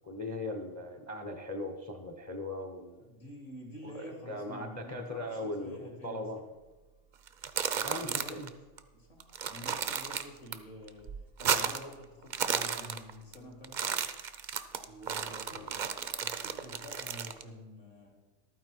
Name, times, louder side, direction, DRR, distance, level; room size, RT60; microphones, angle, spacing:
voice 1, 0.0-3.1 3.8-6.4 7.8-8.5 15.5-15.7, left 1 dB, 15° left, 6 dB, 0.6 m, -39 dB
voice 2, 3.0-6.4 7.6-8.6 8.9-14.0 14.9-18.1, equal, 65° left, -2 dB, 3.3 m, -48 dB
sound 1, 7.3-8.5 8.8-8.9 9.2-10.6 10.9-11.9 12.2-13.4 13.6-17.4, right 7 dB, 55° right, 0.5 m, -33 dB
12.0 x 9.3 x 4.6 m, 1.2 s
omnidirectional pair, 1.4 m